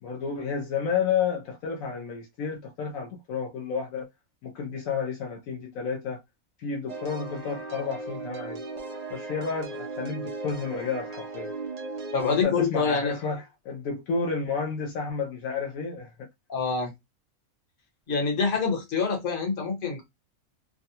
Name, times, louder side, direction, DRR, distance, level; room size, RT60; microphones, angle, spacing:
voice 1, 0.0-4.1 4.4-6.2 6.6-8.6 9.1-11.5 12.2-16.3, left 5 dB, 75° left, 1.0 m, -31 dB
sound 1, 6.9-12.4, right 3 dB, 75° right, 0.3 m, -37 dB
voice 2, 12.1-13.1 16.5-16.9 18.1-20.0, left 5 dB, 40° left, 1.1 m, -26 dB
3.5 x 2.1 x 2.7 m
omnidirectional pair, 1.5 m